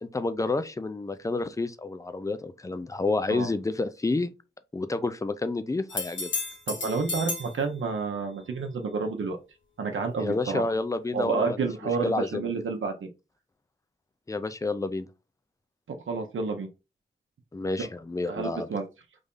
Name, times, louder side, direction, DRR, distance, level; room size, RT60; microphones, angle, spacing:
voice 1, 0.0-4.3 4.7-6.3 10.2-12.5 14.3-15.1 17.5-18.7, left 3 dB, 15° left, 0.4 m, -29 dB
sound 1, 5.9-7.6 11.2-11.3, left 3 dB, 70° left, 1.1 m, -33 dB
voice 2, 6.7-9.4 9.8-10.6 11.1-13.1 15.9-16.7 17.8-17.9 18.3-18.9, right 4 dB, 80° right, 0.7 m, -30 dB
3.4 x 2.6 x 3.6 m
wide cardioid pair, 90°, 20 cm